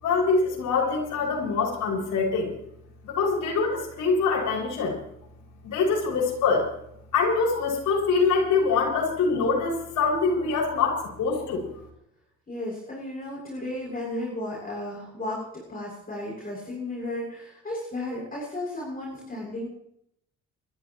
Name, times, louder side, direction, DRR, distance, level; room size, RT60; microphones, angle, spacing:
voice 1, 0.0-2.5 3.1-5.0 5.6-6.7 7.1-11.7, left 4 dB, 80° left, -2 dB, 6.6 m, -24 dB
voice 2, 12.5-19.7, left 1 dB, 30° left, -4 dB, 7.3 m, -34 dB
28.5 x 14.0 x 3.2 m, 0.74 s
cardioid pair, 90°, 30 cm